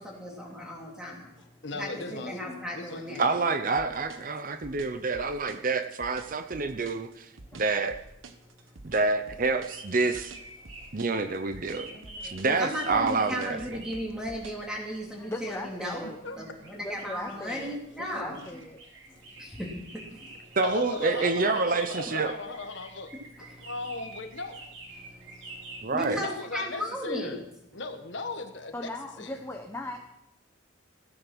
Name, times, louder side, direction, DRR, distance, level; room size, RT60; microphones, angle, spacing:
voice 1, 0.0-1.4 1.7-3.4 12.4-16.1 16.4-18.6 19.1-20.6 23.4-23.7 24.9-27.4, equal, 5° right, -2 dB, 3.2 m, -36 dB
voice 2, 1.6-2.3 2.7-3.3 16.0-16.4 16.6-16.7 17.5-17.7 20.6-23.1 23.6-24.6 26.2-27.4 27.7-28.9 29.2-29.4, left 3 dB, 60° left, 6 dB, 1.4 m, -37 dB
voice 3, 3.2-7.3 7.6-8.0 8.8-10.3 10.9-11.9 12.2-13.6 20.6-22.3 25.8-26.2, right 3 dB, 45° right, 9 dB, 0.7 m, -27 dB
sound 1, 3.8-14.7, right 3 dB, 80° right, 1.3 m, -48 dB
voice 4, 5.1-5.6 11.9-12.3 15.2-16.2 16.8-18.8 28.7-30.0, left 1 dB, 15° left, 3 dB, 1.0 m, -39 dB
sound 2, 9.7-26.2, right 2 dB, 60° right, 3.3 m, -48 dB
15.5 x 10.0 x 6.2 m, 0.85 s
head